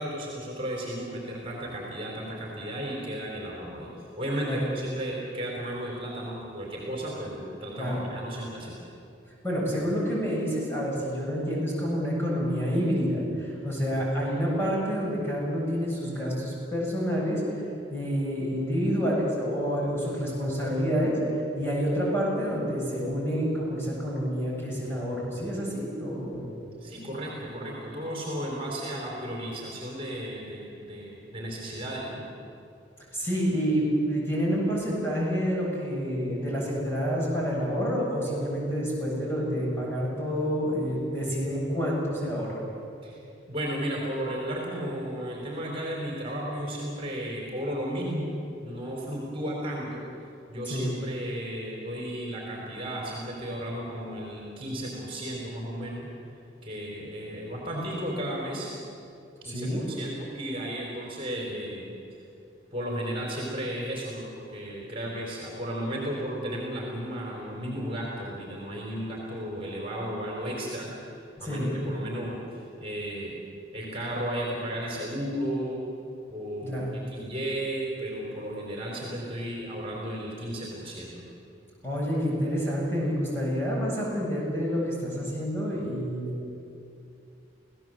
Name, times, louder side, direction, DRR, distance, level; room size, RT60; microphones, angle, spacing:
voice 1, 0.0-3.9 4.2-8.8 26.8-32.2 43.0-43.2 43.5-48.3 48.6-50.0 50.5-56.1 56.6-58.7 59.4-62.0 62.7-70.9 71.4-73.4 73.7-75.8 76.3-81.3, right 1 dB, 30° right, -2 dB, 4.0 m, -34 dB
voice 2, 9.4-17.4 17.9-21.2 21.5-26.4 33.1-42.6 50.6-50.9 59.4-59.8 71.4-71.8 76.6-77.0 81.8-86.4, equal, 10° left, -5 dB, 7.7 m, -28 dB
28.0 x 17.0 x 7.8 m, 2.6 s
head